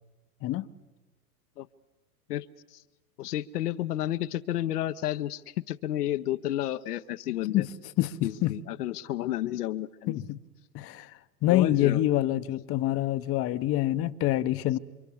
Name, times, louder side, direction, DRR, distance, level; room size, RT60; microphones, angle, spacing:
voice 1, 3.2-7.6 8.2-10.2 11.5-12.0, left 13 dB, 70° left, 1.0 m, -31 dB
voice 2, 8.0-8.6 10.1-10.4 10.7-14.8, left 14 dB, 30° left, 0.9 m, -26 dB
28.5 x 25.5 x 7.2 m
hypercardioid pair, 115°, 47 cm